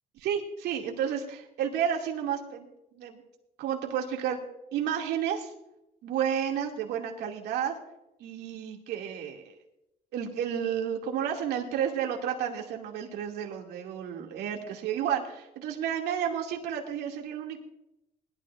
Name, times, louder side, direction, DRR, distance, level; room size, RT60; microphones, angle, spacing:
voice 1, 0.2-2.7 2.9-3.2 3.6-4.4 4.7-5.5 6.0-7.8 8.2-9.5 10.1-17.6, right 8 dB, 80° right, 0 dB, 2.5 m, -31 dB
20.5 x 12.5 x 2.6 m, 0.86 s
cardioid pair, 110°, 17 cm